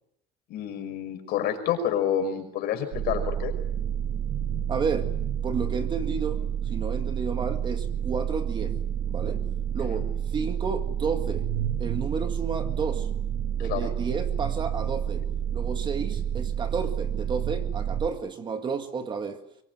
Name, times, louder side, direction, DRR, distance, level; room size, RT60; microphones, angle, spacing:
voice 1, 0.5-3.5 9.8-10.0 13.6-13.9, left 9 dB, 55° left, 6 dB, 5.8 m, -29 dB
sound 1, 2.9-18.1, right 9 dB, 60° right, 1.7 m, -29 dB
voice 2, 4.7-5.1 5.4-8.7 9.1-9.4 9.7-11.4 11.8-13.1 13.6-15.2 15.5-19.4, right 5 dB, 25° right, 7 dB, 1.9 m, -32 dB
24.0 x 22.5 x 9.4 m, 0.77 s
cardioid pair, 170°, 19 cm